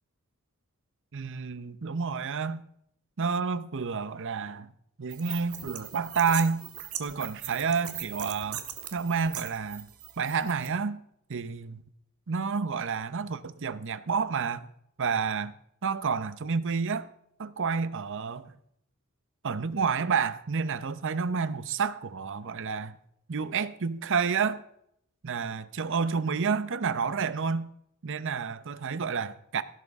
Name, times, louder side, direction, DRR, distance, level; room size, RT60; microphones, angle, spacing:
voice 1, 1.1-2.6 3.2-4.7 5.0-6.6 7.0-8.6 8.9-9.9 10.2-11.0 11.3-11.8 12.3-14.7 15.0-15.5 15.8-17.1 17.4-18.5 19.4-23.0 23.3-24.6 25.2-27.7 28.0-29.6, right 5 dB, 60° right, 0.7 m, -29 dB
sound 1, 5.1-10.7, right 11 dB, 80° right, 1.6 m, -40 dB
17.0 x 11.0 x 3.6 m
head